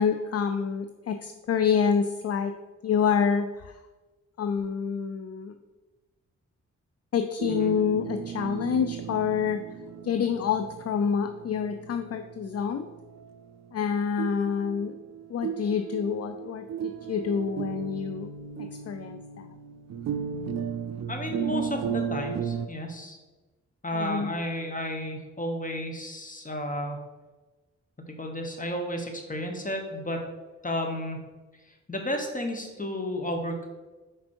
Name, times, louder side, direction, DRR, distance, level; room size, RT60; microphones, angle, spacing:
voice 1, 0.0-2.5 2.8-3.8 4.4-5.5 7.1-9.6 10.0-12.9 13.7-15.0 15.3-18.3 18.6-19.5 23.9-24.3, left 7 dB, 55° left, 8 dB, 0.4 m, -27 dB
sound 1, 7.4-22.7, right 8 dB, 60° right, 0.4 m, -36 dB
voice 2, 21.1-23.2 23.8-27.0 28.0-30.2 30.6-31.2 31.9-33.7, left 1 dB, 25° left, 3 dB, 1.2 m, -32 dB
5.2 x 4.3 x 4.4 m, 1.2 s
cardioid pair, 55°, 30 cm